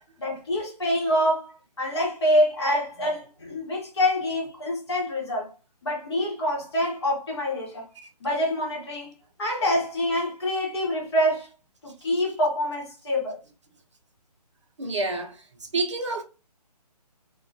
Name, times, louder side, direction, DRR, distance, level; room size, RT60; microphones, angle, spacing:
voice 1, 0.2-1.5 1.8-5.5 5.8-7.9 8.2-9.1 9.4-11.5 11.8-13.4, left 1 dB, 40° left, 1.0 m, -26 dB
voice 2, 14.8-15.3 15.7-16.2, right 2 dB, 45° right, 0.5 m, -27 dB
2.3 x 2.1 x 2.6 m
figure-of-eight pair, 145°, 21 cm